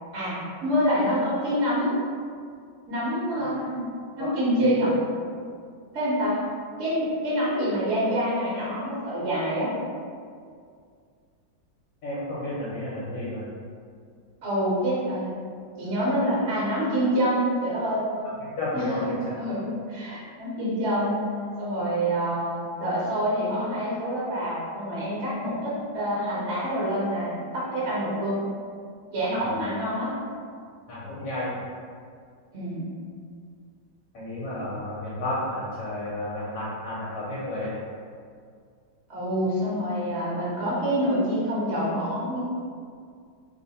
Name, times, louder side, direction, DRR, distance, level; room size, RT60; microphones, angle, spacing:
voice 1, 0.1-2.0 2.9-3.9 4.2-5.0 5.9-6.4 6.8-9.7 14.4-15.3 15.8-18.0 18.7-21.2 21.6-28.4 29.1-30.1 32.5-32.9 39.1-42.4, equal, 45° right, -9 dB, 1.0 m, -26 dB
voice 2, 12.0-13.5 18.6-19.0 29.4-29.5 30.9-31.5 34.1-37.7, left 1 dB, 70° left, -8 dB, 1.3 m, -32 dB
3.2 x 2.2 x 4.0 m, 2.2 s
omnidirectional pair, 2.1 m